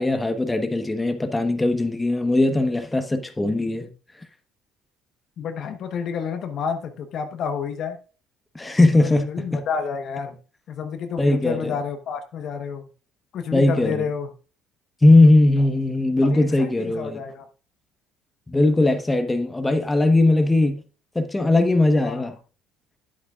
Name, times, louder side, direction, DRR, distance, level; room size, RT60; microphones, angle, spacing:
voice 1, 0.0-3.9 8.5-9.6 11.2-11.8 13.5-14.1 15.0-17.2 18.5-20.8 21.1-22.3, left 2 dB, 15° left, 1.2 m, -19 dB
voice 2, 5.4-8.0 8.9-10.4 10.7-12.9 13.3-14.3 16.2-17.4 22.0-22.3, left 6 dB, 60° left, 1.1 m, -30 dB
10.0 x 8.3 x 2.4 m
hypercardioid pair, 65°, 0 cm